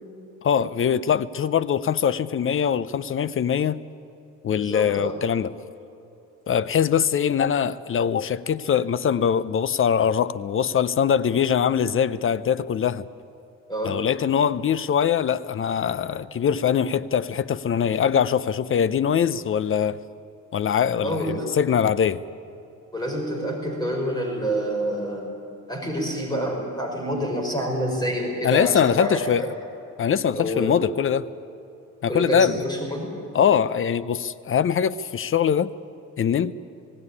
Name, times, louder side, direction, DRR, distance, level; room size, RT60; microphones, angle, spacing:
voice 1, 0.4-3.8 4.4-5.5 6.5-13.0 13.8-20.0 20.5-22.2 28.4-29.4 30.0-31.3 32.0-32.6 33.3-35.7 36.2-36.5, left 8 dB, 45° left, 0.6 m, -22 dB
voice 2, 4.5-5.2 13.7-14.0 21.0-21.5 22.9-25.3 25.7-29.5 30.3-30.7 32.1-33.1, equal, 15° left, 5.1 m, -27 dB
19.0 x 16.5 x 9.7 m
cardioid pair, 90°, 30 cm